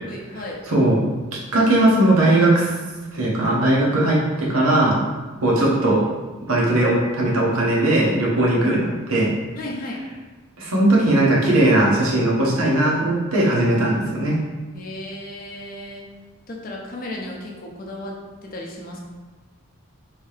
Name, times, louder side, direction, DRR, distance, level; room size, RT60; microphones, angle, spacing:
voice 1, 0.0-0.6 4.4-4.8 9.6-10.0 14.7-16.1 16.5-18.1 18.4-19.1, left 1 dB, 40° left, -1 dB, 0.5 m, -34 dB
voice 2, 0.7-1.0 1.3-2.7 3.1-5.0 5.4-6.0 6.5-9.3 10.6-14.3, right 1 dB, 85° right, -4 dB, 0.9 m, -18 dB
3.2 x 2.8 x 3.2 m, 1.3 s
head